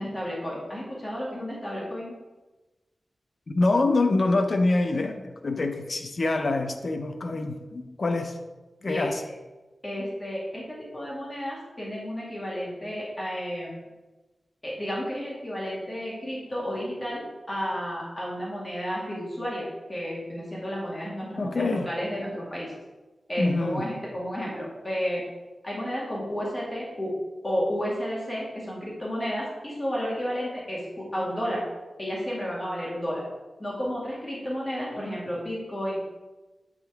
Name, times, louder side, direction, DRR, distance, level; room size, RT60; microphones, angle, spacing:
voice 1, 0.0-2.1 8.8-9.1 9.8-13.8 14.6-22.7 23.3-25.2 25.6-27.1 27.4-31.6 32.0-33.2 33.6-36.0, equal, 25° left, -5 dB, 1.9 m, -32 dB
voice 2, 3.5-8.4 8.8-9.2 21.4-21.9 23.4-23.9, left 2 dB, 55° left, 5 dB, 0.6 m, -25 dB
8.3 x 3.7 x 3.5 m, 1.1 s
cardioid pair, 65°, 0 cm